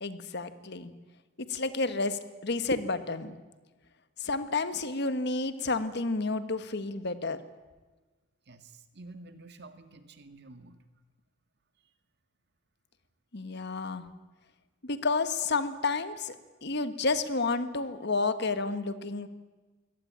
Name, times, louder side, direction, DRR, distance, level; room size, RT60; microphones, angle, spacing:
voice 1, 0.0-0.9 1.5-3.3 4.2-7.4 13.3-14.0 14.8-16.3 16.6-19.3, left 3 dB, 60° left, 11 dB, 1.5 m, -30 dB
voice 2, 8.5-10.8, right 2 dB, 60° right, 8 dB, 2.0 m, -50 dB
23.0 x 18.0 x 8.8 m, 1.3 s
head